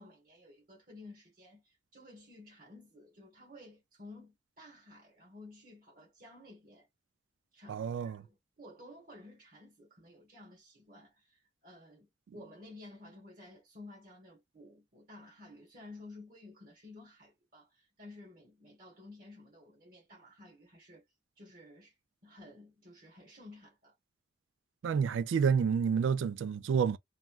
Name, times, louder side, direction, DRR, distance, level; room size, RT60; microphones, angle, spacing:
voice 1, 0.0-6.9 7.5-12.1 12.3-21.0 21.4-21.9 22.2-23.9, left 2 dB, 50° right, 1.3 m, -53 dB
voice 2, 7.7-8.2 24.8-27.0, right 6 dB, 85° right, 0.3 m, -29 dB
3.1 x 2.2 x 2.3 m
head